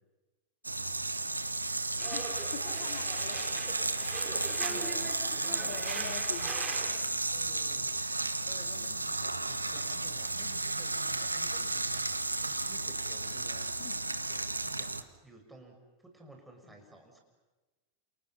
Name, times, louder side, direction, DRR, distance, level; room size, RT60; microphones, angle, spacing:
sound 1, 0.6-15.0, right 2 dB, 85° right, 1.2 m, -33 dB
sound 2, 2.0-7.0, right 5 dB, 25° right, 4.7 m, -41 dB
voice 1, 2.5-4.1 4.7-5.1 5.7-6.6 13.8-14.0 16.6-16.9, left 9 dB, 55° left, 6 dB, 2.8 m, -45 dB
voice 2, 4.4-4.9 5.4-5.8 7.3-7.9 8.3-13.8 14.3-17.2, right 2 dB, 5° right, 2 dB, 6.2 m, -54 dB
29.5 x 28.5 x 5.9 m, 1.2 s
figure-of-eight pair, 90°, 0 cm